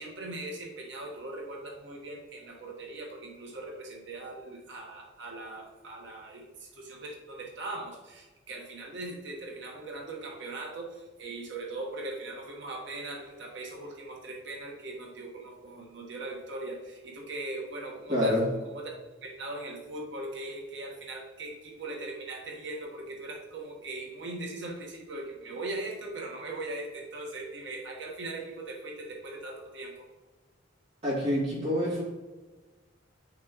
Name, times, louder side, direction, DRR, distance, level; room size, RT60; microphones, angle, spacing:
voice 1, 0.0-18.4 18.7-18.9 19.2-30.1, right 2 dB, 65° right, -1 dB, 1.4 m, -40 dB
voice 2, 18.1-18.4 31.0-32.0, left 1 dB, 35° right, -7 dB, 2.5 m, -26 dB
9.5 x 6.0 x 3.0 m, 1.2 s
head